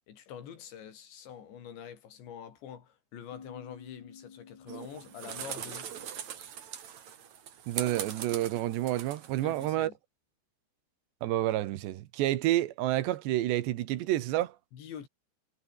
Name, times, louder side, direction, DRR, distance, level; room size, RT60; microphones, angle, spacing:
voice 1, 0.1-5.9 9.4-10.0 14.7-15.1, left 8 dB, 85° left, 5.6 m, -46 dB
sound 1, 3.3-6.9, left 7 dB, 65° left, 6.0 m, -53 dB
sound 2, 4.7-9.7, right 9 dB, 50° right, 2.8 m, -41 dB
voice 2, 7.7-9.9 11.2-14.5, right 14 dB, 80° right, 3.4 m, -29 dB
omnidirectional pair, 5.0 m